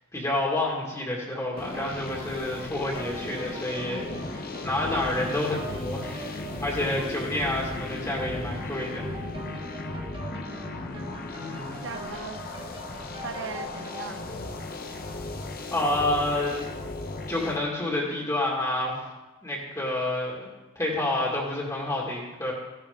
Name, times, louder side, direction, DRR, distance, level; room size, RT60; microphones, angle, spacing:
voice 1, 0.1-9.1 11.4-11.8 15.7-16.7 17.3-19.1 19.4-20.5 20.8-22.5, left 1 dB, 15° left, -4 dB, 2.2 m, -29 dB
sound 1, 1.3-14.2, right 1 dB, 25° right, 1.5 m, -43 dB
sound 2, 1.6-17.6, left 2 dB, 45° left, 1.0 m, -36 dB
voice 2, 10.4-10.9 11.8-12.4 13.2-14.3, right 4 dB, 60° right, 7 dB, 1.0 m, -38 dB
15.5 x 11.0 x 3.8 m, 1.1 s
head